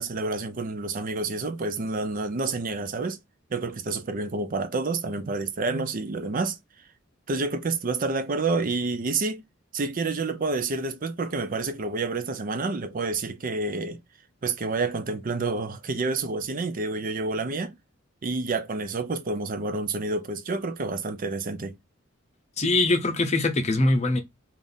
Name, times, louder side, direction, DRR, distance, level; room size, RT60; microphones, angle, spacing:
voice 1, 0.0-3.2 3.5-6.6 7.3-9.4 9.7-14.0 14.4-17.7 18.2-21.8, right 3 dB, 45° right, 0.5 m, -29 dB
voice 2, 22.6-24.2, left 2 dB, 35° left, 0.7 m, -22 dB
3.5 x 2.5 x 3.9 m
head